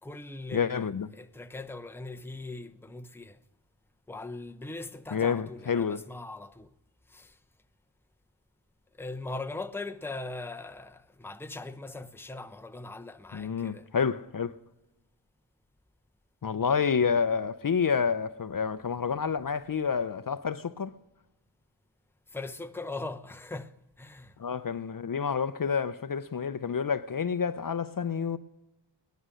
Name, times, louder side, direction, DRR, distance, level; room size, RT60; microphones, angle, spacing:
voice 1, 0.0-0.8 1.1-3.4 4.1-6.7 7.1-7.4 9.0-13.9 22.3-24.4, left 2 dB, 5° left, 0.7 m, -40 dB
voice 2, 0.5-1.1 5.1-6.0 13.3-14.5 16.4-20.9 24.4-28.4, left 6 dB, 45° left, 0.6 m, -29 dB
18.5 x 11.0 x 6.3 m
cardioid pair, 45°, 45 cm